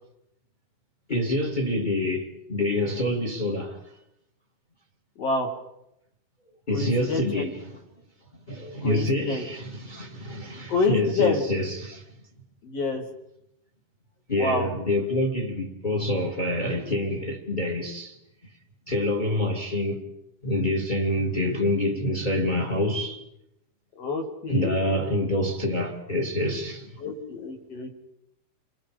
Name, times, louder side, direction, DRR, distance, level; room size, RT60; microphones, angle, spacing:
voice 1, 1.1-3.8 6.7-7.5 8.5-12.0 14.3-18.1 18.9-20.0 20.4-23.2 24.5-27.0, left 1 dB, 20° left, 1.5 m, -26 dB
voice 2, 5.2-5.5 6.7-7.5 8.8-9.4 10.7-11.4 12.6-13.0 14.4-14.7 24.0-25.0 27.0-27.9, left 3 dB, 45° left, 2.8 m, -28 dB
29.5 x 23.0 x 5.1 m
omnidirectional pair, 4.9 m